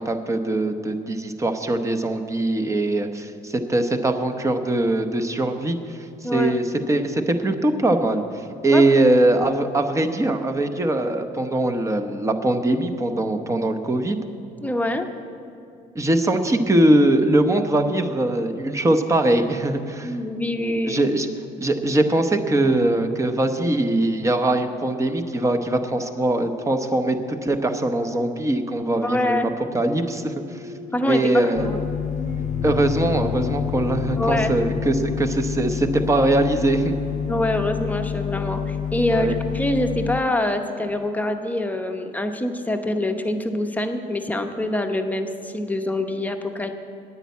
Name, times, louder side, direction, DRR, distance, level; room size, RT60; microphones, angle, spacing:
voice 1, 0.0-5.8 6.2-6.6 6.9-8.2 8.6-14.2 15.9-20.1 20.9-21.3 21.6-27.2 27.4-29.4 29.7-30.3 31.1-31.7 32.6-37.0 39.1-39.3, right 1 dB, 20° right, 6 dB, 0.9 m, -21 dB
voice 2, 6.2-6.6 8.7-8.8 14.6-15.1 20.0-21.1 29.0-29.5 30.9-31.8 34.2-34.5 37.3-46.7, left 1 dB, 10° left, 5 dB, 0.9 m, -25 dB
sound 1, 30.1-38.3, left 6 dB, 40° right, 1.9 m, -36 dB
sound 2, 31.6-40.2, left 8 dB, 45° left, 0.4 m, -28 dB
9.8 x 9.5 x 8.3 m, 2.7 s
cardioid pair, 110°, 17 cm